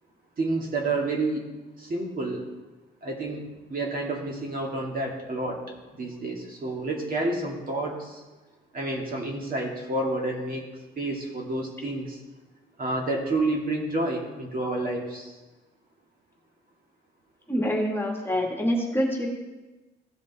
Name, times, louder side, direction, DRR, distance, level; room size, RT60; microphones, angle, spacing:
voice 1, 0.4-1.5 1.8-2.5 3.0-3.4 3.7-5.6 6.0-8.2 8.7-10.6 11.0-12.2 12.8-15.3, right 2 dB, 45° right, 0 dB, 2.2 m, -29 dB
voice 2, 17.5-19.3, equal, 10° left, 0 dB, 1.8 m, -26 dB
15.0 x 5.2 x 4.1 m, 1.1 s
cardioid pair, 90°, 20 cm